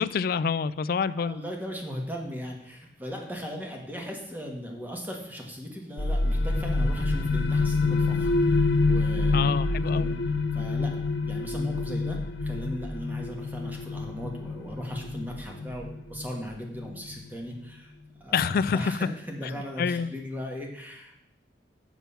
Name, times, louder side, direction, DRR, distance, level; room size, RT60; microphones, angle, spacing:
voice 1, 0.0-1.4 9.3-10.1 18.3-18.9 19.8-20.1, left 6 dB, 55° left, 15 dB, 0.3 m, -27 dB
voice 2, 1.2-9.6 9.9-10.2 10.5-17.9 18.2-21.2, equal, 10° right, 0 dB, 1.5 m, -38 dB
sound 1, 6.0-17.4, left 3 dB, 85° left, 0.7 m, -27 dB
7.4 x 7.1 x 5.7 m, 0.78 s
head